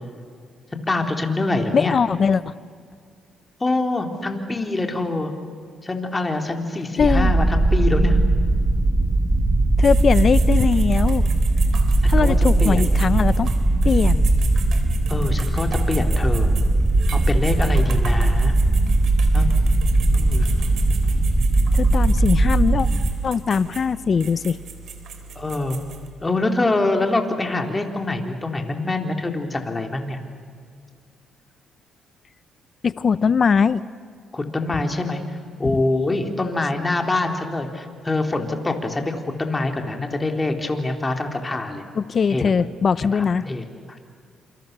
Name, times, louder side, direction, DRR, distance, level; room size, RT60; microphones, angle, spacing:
voice 1, 0.9-2.0 3.6-5.3 5.8-8.2 12.0-12.9 15.1-16.5 17.1-18.5 19.3-20.5 25.4-25.8 26.2-30.2 34.3-41.8 42.3-42.5 43.1-44.0, left 2 dB, 20° left, 4 dB, 3.7 m, -25 dB
voice 2, 1.7-2.5 7.0-7.3 9.8-11.3 12.1-13.5 13.8-14.3 21.7-22.9 23.2-24.6 32.8-33.8 35.6-35.8 41.9-43.5, left 6 dB, 45° left, 16 dB, 0.8 m, -20 dB
sound 1, 7.0-23.1, right 2 dB, 15° right, 2.1 m, -19 dB
sound 2, 9.8-26.1, right 6 dB, 65° right, 3.8 m, -38 dB
30.0 x 27.5 x 6.9 m, 2.2 s
cardioid pair, 90°, 0 cm